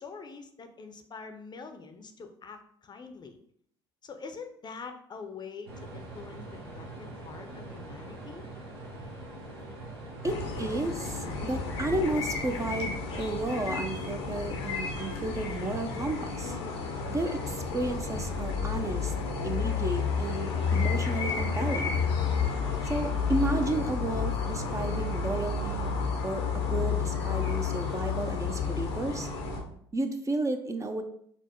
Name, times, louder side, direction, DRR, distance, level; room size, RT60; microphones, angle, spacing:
voice 1, 0.0-3.4 4.0-8.4, left 5 dB, 35° left, 6 dB, 0.6 m, -45 dB
sound 1, 5.7-13.3, right 2 dB, 90° right, 1.0 m, -43 dB
sound 2, 10.2-29.6, left 5 dB, 90° left, 0.8 m, -31 dB
voice 2, 10.2-16.6 17.1-19.1 19.4-22.0 22.8-25.8 26.2-29.3 29.9-31.0, right 2 dB, 25° right, 6 dB, 0.5 m, -32 dB
4.3 x 2.1 x 4.3 m, 0.65 s
hypercardioid pair, 65°, 13 cm